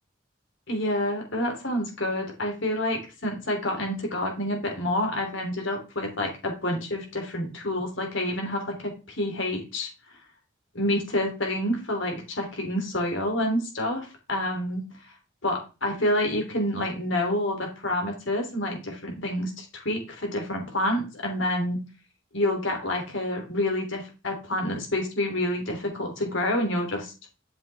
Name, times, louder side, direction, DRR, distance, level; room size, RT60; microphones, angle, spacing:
voice 1, 0.7-9.9 10.7-14.8 15.4-21.8 22.3-27.1, left 1 dB, 75° left, 2 dB, 3.3 m, -28 dB
8.9 x 7.0 x 3.5 m, 0.31 s
head